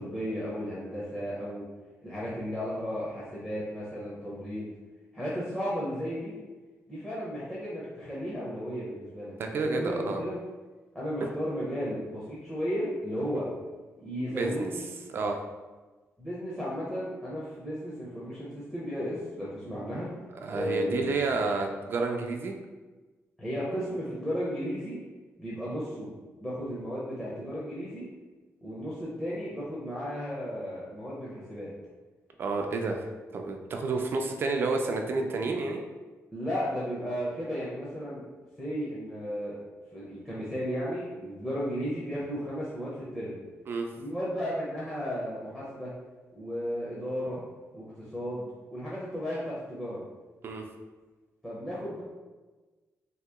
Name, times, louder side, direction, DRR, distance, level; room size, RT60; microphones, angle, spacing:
voice 1, 0.0-1.7 2.0-4.7 5.1-6.3 6.9-10.3 10.9-13.5 14.0-14.8 16.2-20.1 20.5-21.3 23.4-25.0 25.4-26.1 26.4-28.0 28.6-31.7 36.3-38.3 38.6-39.6 39.9-43.4 44.0-45.9 46.4-47.4 47.7-50.0 51.4-52.0, equal, 5° left, -8 dB, 0.6 m, -34 dB
voice 2, 9.4-10.2 14.2-14.7 15.1-15.4 20.4-22.5 32.4-35.8 43.7-43.9 50.4-50.6, right 3 dB, 45° right, 3 dB, 0.3 m, -30 dB
2.8 x 2.8 x 3.5 m, 1.2 s
wide cardioid pair, 170°, 5 cm